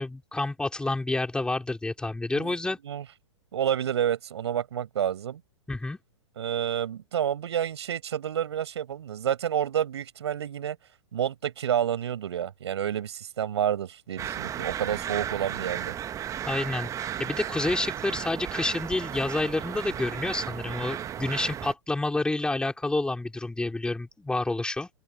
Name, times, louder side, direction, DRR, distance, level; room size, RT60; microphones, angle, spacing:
voice 1, 0.0-2.8 5.7-6.0 16.5-24.9, left 2 dB, 5° left, 5.1 m, -29 dB
voice 2, 3.5-5.4 6.4-10.8 11.1-16.0, right 9 dB, 60° right, 6.9 m, -29 dB
sound 1, 14.2-21.7, right 10 dB, 20° right, 1.5 m, -34 dB
open air
figure-of-eight pair, 105°, 15 cm